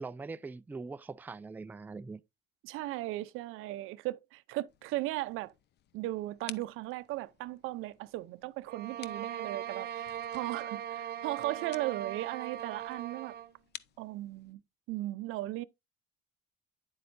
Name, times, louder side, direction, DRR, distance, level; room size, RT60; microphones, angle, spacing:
voice 1, 0.0-2.2, right 4 dB, 10° right, 0.4 m, -42 dB
voice 2, 2.6-5.5 5.9-13.4 14.0-14.6 14.9-15.6, right 17 dB, 80° right, 0.6 m, -37 dB
sound 1, 4.7-14.5, left 11 dB, 55° left, 0.6 m, -54 dB
sound 2, 8.7-13.5, right 10 dB, 50° right, 0.8 m, -39 dB
9.7 x 7.7 x 2.6 m
cardioid pair, 120°, 21 cm